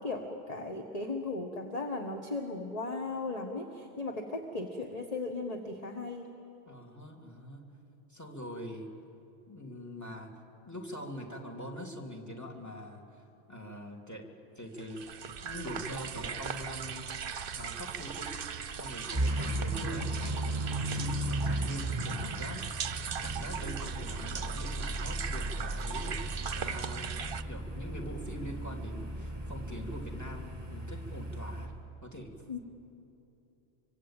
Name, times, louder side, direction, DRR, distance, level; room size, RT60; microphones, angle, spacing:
voice 1, 0.0-6.2 32.5-32.6, left 3 dB, 35° left, 3 dB, 1.5 m, -36 dB
voice 2, 6.7-7.8 8.1-8.9 9.5-14.3 14.6-15.0 15.4-17.1 17.5-18.3 18.8-22.8 23.2-31.7 32.0-32.3, equal, 15° left, 2 dB, 2.8 m, -43 dB
sound 1, 14.8-27.4, right 7 dB, 60° right, 0.9 m, -39 dB
sound 2, 19.1-31.7, right 1 dB, 25° right, 2.7 m, -36 dB
26.0 x 24.5 x 8.9 m, 2.9 s
omnidirectional pair, 1.1 m